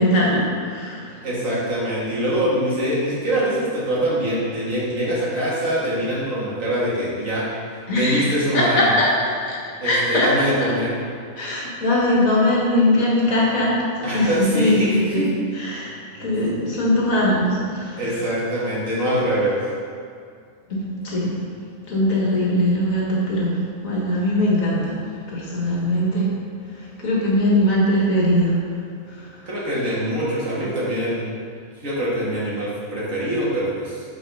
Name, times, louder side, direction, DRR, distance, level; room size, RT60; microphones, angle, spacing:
voice 1, 0.0-1.0 7.9-8.2 8.5-8.6 9.0-9.1 9.4-9.5 9.8-10.3 11.4-13.8 14.1-15.2 15.6-15.9 16.2-17.9 20.7-21.3 21.9-23.5 23.8-24.9 25.3-26.3 27.0-28.5, left 1 dB, 70° left, -5 dB, 2.0 m, -20 dB
voice 2, 1.2-7.5 7.9-8.9 9.8-10.9 14.0-15.3 18.0-19.6 29.5-31.3 31.8-34.0, right 1 dB, 60° right, -7 dB, 2.2 m, -24 dB
6.0 x 5.0 x 5.4 m, 2.2 s
omnidirectional pair, 1.5 m